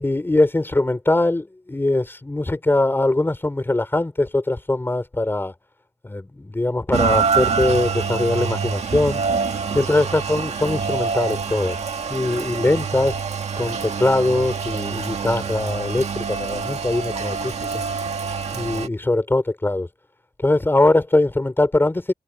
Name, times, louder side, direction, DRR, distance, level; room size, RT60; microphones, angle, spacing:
voice 1, 0.0-5.5 6.0-9.2 9.7-11.8 12.1-13.2 13.6-17.5 18.5-19.9 20.4-22.1, left 2 dB, 20° left, 3.6 m, -21 dB
Rain, 6.9-18.9, right 5 dB, 80° right, 1.9 m, -26 dB
wide cardioid pair, 120°, 11 cm